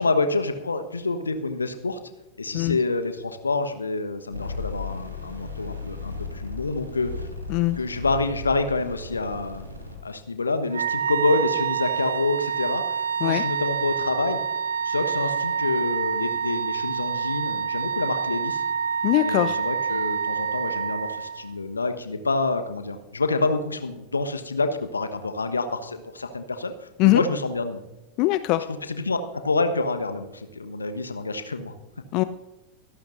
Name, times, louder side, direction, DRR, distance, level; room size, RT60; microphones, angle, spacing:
voice 1, 0.0-2.0 2.4-7.3 7.7-9.7 10.0-14.4 14.8-18.6 19.2-27.8 28.7-31.7, left 3 dB, 75° left, 9 dB, 1.2 m, -27 dB
sound 1, 4.3-9.9, left 4 dB, 85° right, 2.8 m, -35 dB
Wind instrument woodwind instrument, 10.7-21.5, right 7 dB, 70° right, 0.7 m, -27 dB
voice 2, 19.0-19.6 27.0-27.2 28.2-28.7 32.1-32.2, left 18 dB, 40° left, 13 dB, 0.5 m, -21 dB
23.5 x 12.0 x 2.6 m, 0.99 s
figure-of-eight pair, 90°, 0 cm